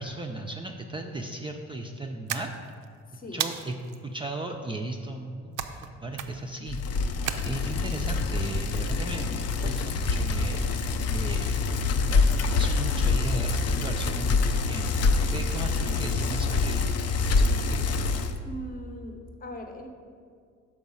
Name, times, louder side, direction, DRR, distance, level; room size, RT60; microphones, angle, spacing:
voice 1, 0.0-2.5 3.3-3.7 4.0-6.8 7.4-11.8 12.1-16.9 17.4-18.0, right 2 dB, 15° right, 2 dB, 0.4 m, -36 dB
sound 1, 2.3-2.9 3.4-4.0 5.6-5.9 6.1-6.6 7.3-7.9, right 10 dB, 85° right, 0.5 m, -33 dB
voice 2, 3.1-3.5 18.4-19.9, equal, 30° left, 5 dB, 0.8 m, -40 dB
Bicycle, 6.7-18.4, left 4 dB, 55° left, 0.5 m, -26 dB
6.1 x 4.7 x 5.4 m, 2.1 s
cardioid pair, 90°, 30 cm